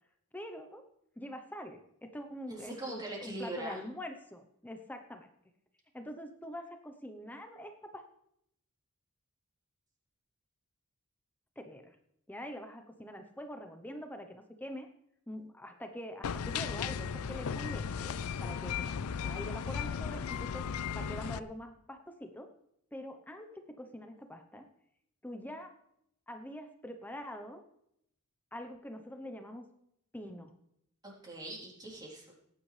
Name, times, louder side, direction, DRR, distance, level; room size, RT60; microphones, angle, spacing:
voice 1, 0.3-0.8 1.2-1.8 2.1-5.3 5.9-8.0 11.6-12.0 12.3-14.9 15.3-18.1 18.4-20.4 20.9-22.5 22.9-24.7 25.2-25.7 26.3-27.6 28.5-29.6 30.1-30.5, equal, 10° left, 6 dB, 0.8 m, -44 dB
voice 2, 2.5-3.8 31.0-32.3, right 2 dB, 20° right, -4 dB, 3.6 m, -41 dB
sound 1, 16.2-21.4, left 6 dB, 75° left, 0.4 m, -36 dB
18.0 x 10.0 x 3.3 m, 0.75 s
head